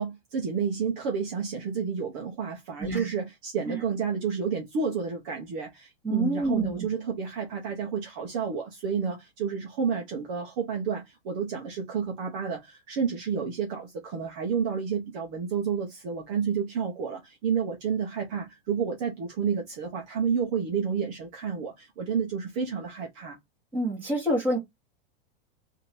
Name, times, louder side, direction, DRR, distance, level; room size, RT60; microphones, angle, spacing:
voice 1, 0.0-23.4, right 6 dB, 35° right, 0.9 m, -30 dB
voice 2, 2.8-3.1 3.7-3.8 6.0-6.8 23.7-24.6, right 2 dB, 5° right, 1.7 m, -27 dB
3.6 x 2.8 x 4.4 m
supercardioid pair, 175°, 31 cm